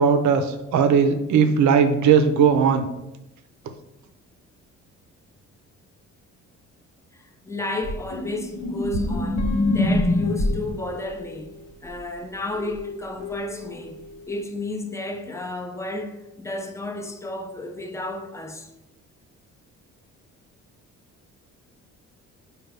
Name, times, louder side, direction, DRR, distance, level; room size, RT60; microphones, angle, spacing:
voice 1, 0.0-2.8, right 6 dB, 70° right, 0.5 m, -18 dB
voice 2, 7.1-11.5 11.8-14.0 14.3-18.7, left 2 dB, 10° left, 0.5 m, -32 dB
sound 1, 7.8-10.8 13.6-13.7, left 2 dB, 85° left, 0.9 m, -23 dB
Guitar, 9.4-11.8 12.5-14.5, left 3 dB, 60° left, 0.7 m, -39 dB
5.1 x 2.3 x 3.3 m
cardioid pair, 90°, 30 cm